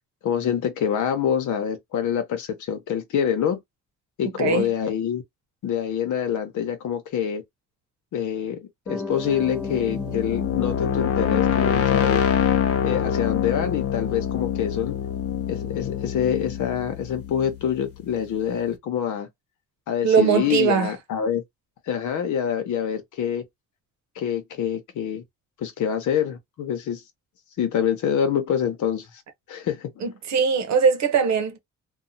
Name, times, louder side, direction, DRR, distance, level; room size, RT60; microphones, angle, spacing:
voice 1, 0.2-3.6 4.2-5.2 5.6-7.4 8.1-12.2 12.8-15.0 15.5-19.3 19.9-21.4 21.9-23.4 24.2-25.2 25.6-27.0 27.6-29.1 29.5-30.0, left 8 dB, 75° left, 0.9 m, -26 dB
Piano, 8.9-15.4, left 3 dB, ahead, 0.6 m, -37 dB
sound 1, 9.3-18.1, left 9 dB, 50° left, 0.7 m, -25 dB
voice 2, 20.0-20.9 30.0-31.6, right 6 dB, 65° right, 0.9 m, -21 dB
2.7 x 2.3 x 2.7 m
cardioid pair, 90°, 30 cm